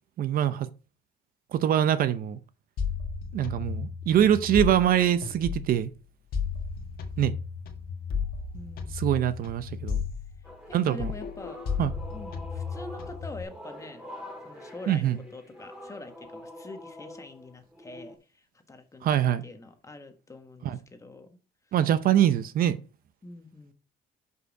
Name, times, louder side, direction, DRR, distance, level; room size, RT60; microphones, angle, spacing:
voice 1, 0.2-0.7 1.5-2.4 3.3-5.9 7.2-7.3 9.0-10.0 10.7-11.1 11.8-11.9 14.9-15.2 19.0-19.4 20.6-20.8 21.7-22.8, right 10 dB, 60° right, 0.6 m, -24 dB
sound 1, 2.8-5.9 6.3-10.7 11.0-13.4, left 6 dB, 65° left, 1.5 m, -34 dB
voice 2, 8.5-9.0 10.7-11.6 12.1-14.1 14.4-19.2 19.4-21.4 23.2-23.7, left 2 dB, 20° left, 1.4 m, -44 dB
sound 2, 10.4-18.2, left 1 dB, 5° right, 2.7 m, -45 dB
6.6 x 5.6 x 4.9 m
cardioid pair, 110°, 17 cm